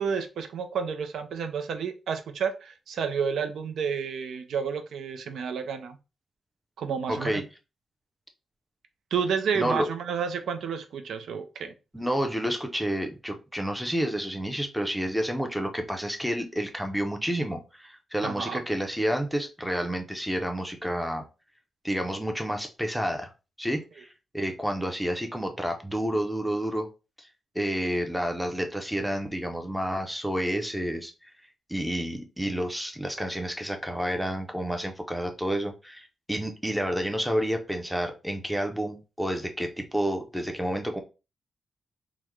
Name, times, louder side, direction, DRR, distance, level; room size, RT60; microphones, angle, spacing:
voice 1, 0.0-6.0 6.8-7.4 9.1-11.7 18.2-18.6, right 6 dB, 80° right, 8 dB, 0.4 m, -30 dB
voice 2, 7.1-7.4 9.5-9.9 11.9-21.2 21.8-23.3 23.6-26.9 27.2-27.3 27.5-31.3 31.7-41.0, equal, ahead, 4 dB, 0.5 m, -30 dB
3.5 x 2.1 x 3.0 m, 0.30 s
wide cardioid pair, 135°, 0 cm